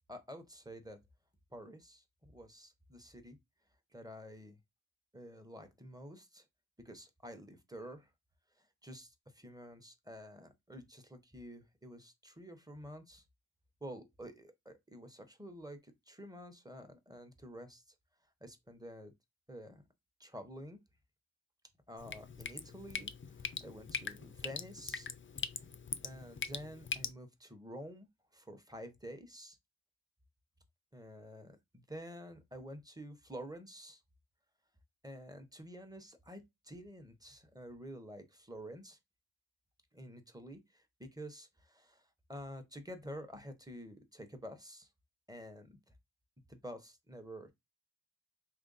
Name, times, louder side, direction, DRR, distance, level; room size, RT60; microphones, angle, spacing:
voice 1, 0.1-1.0 1.5-3.4 3.9-4.6 5.1-6.5 6.8-8.1 8.6-13.2 13.8-17.9 18.4-19.1 19.5-19.8 20.2-20.8 21.9-25.1 26.0-29.6 30.9-34.0 35.0-39.0 39.9-44.9 45.3-45.8 46.5-47.5, equal, 10° right, 0.7 m, -49 dB
Drip, 22.0-27.1, left 5 dB, 35° left, 0.4 m, -42 dB
3.1 x 2.4 x 3.9 m
wide cardioid pair, 60°, 38 cm